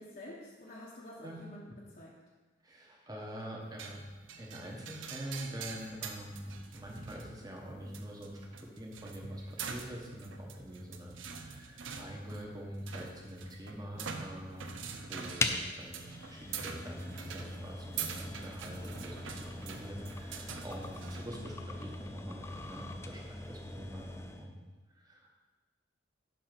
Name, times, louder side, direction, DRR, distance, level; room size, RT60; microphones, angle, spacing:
voice 1, 0.0-2.2, left 1 dB, 45° left, -5 dB, 1.2 m, -49 dB
voice 2, 2.6-4.0 4.4-24.6 24.9-25.4, equal, 20° right, -1 dB, 1.3 m, -45 dB
sound 1, 3.8-21.3, right 6 dB, 80° right, 0.7 m, -45 dB
sound 2, 15.4-24.5, left 2 dB, 15° left, 0.4 m, -41 dB
10.5 x 4.2 x 6.0 m, 1.3 s
head